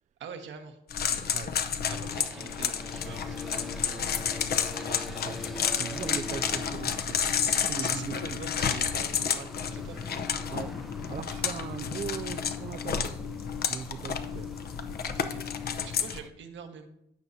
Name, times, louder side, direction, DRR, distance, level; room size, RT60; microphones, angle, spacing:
voice 1, 0.2-1.2 1.9-4.4 7.8-10.0 15.1-16.9, right 6 dB, 70° right, 5 dB, 1.3 m, -45 dB
sound 1, 0.9-16.2, left 7 dB, 50° left, 0.7 m, -31 dB
sound 2, 1.9-16.3, equal, ahead, 0.7 m, -46 dB
voice 2, 4.4-7.2 7.5-8.4 10.5-10.8 11.1-13.1 13.7-14.5, right 7 dB, 40° right, 9 dB, 0.4 m, -40 dB
16.0 x 5.7 x 2.7 m, 0.79 s
cardioid pair, 90°, 20 cm